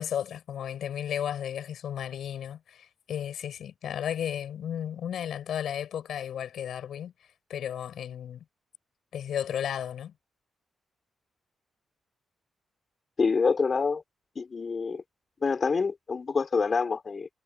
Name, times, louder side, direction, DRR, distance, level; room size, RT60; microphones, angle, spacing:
voice 1, 0.0-7.1 7.5-8.4 9.1-10.1, left 9 dB, 80° left, 7.8 m, -34 dB
voice 2, 13.2-14.0 14.4-15.0 15.4-17.3, left 4 dB, 40° left, 5.2 m, -26 dB
cardioid pair, 85°, 0 cm